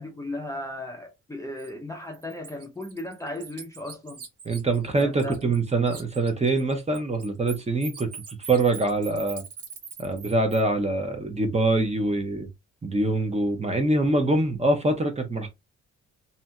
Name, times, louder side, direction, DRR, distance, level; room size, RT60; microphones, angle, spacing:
voice 1, 0.0-4.2 5.0-5.6, left 1 dB, 10° left, 0.6 m, -36 dB
Bird, 1.6-1.7 2.1-5.6 5.9-10.6, right 6 dB, 50° right, 0.8 m, -42 dB
voice 2, 4.5-9.4 10.0-12.5 12.8-15.5, right 2 dB, 20° right, 0.8 m, -24 dB
2.7 x 2.6 x 2.2 m
cardioid pair, 90°, 30 cm